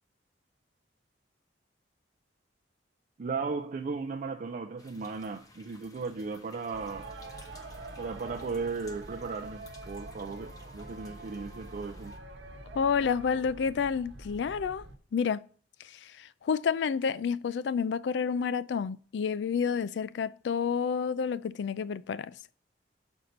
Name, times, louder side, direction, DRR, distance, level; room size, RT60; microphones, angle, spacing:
voice 1, 3.2-7.1 8.0-12.1, right 4 dB, 45° right, 0.4 m, -36 dB
sound 1, 4.8-12.2, left 2 dB, 20° left, 0.8 m, -57 dB
sound 2, 6.7-15.0, right 2 dB, 75° right, 1.0 m, -45 dB
voice 2, 12.7-14.8 15.1-15.4 15.8-22.3, left 6 dB, 70° left, 0.3 m, -29 dB
6.5 x 4.4 x 5.2 m
head